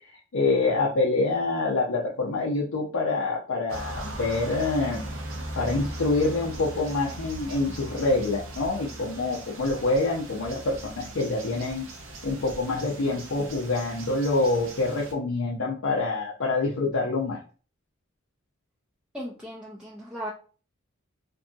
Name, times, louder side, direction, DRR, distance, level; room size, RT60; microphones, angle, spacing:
voice 1, 0.1-5.1 5.5-11.8 12.2-17.4, left 3 dB, 70° left, -3 dB, 0.5 m, -26 dB
sound 1, 3.7-15.1, right 1 dB, 70° right, 0.6 m, -39 dB
voice 2, 19.1-20.3, equal, 5° right, -5 dB, 0.4 m, -37 dB
2.6 x 2.6 x 2.3 m, 0.38 s
head